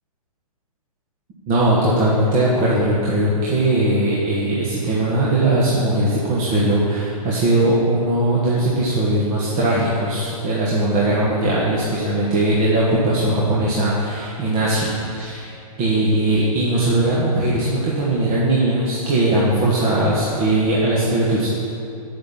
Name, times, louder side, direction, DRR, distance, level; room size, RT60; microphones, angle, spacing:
voice 1, 1.5-15.5 15.8-21.5, right 1 dB, 30° right, -7 dB, 1.5 m, -19 dB
7.6 x 5.9 x 7.1 m, 2.6 s
hypercardioid pair, 140°, 19 cm